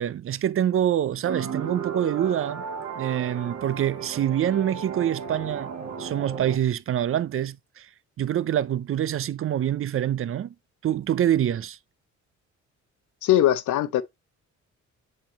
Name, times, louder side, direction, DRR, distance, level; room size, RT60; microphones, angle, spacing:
voice 1, 0.0-2.6 2.9-5.7 6.0-7.9 8.2-10.5 10.8-11.8, right 10 dB, 45° right, 0.5 m, -25 dB
sound 1, 1.2-6.6, right 6 dB, 60° right, 1.6 m, -34 dB
voice 2, 13.2-14.0, left 12 dB, 75° left, 0.7 m, -20 dB
7.3 x 5.3 x 2.9 m
cardioid pair, 90°, 30 cm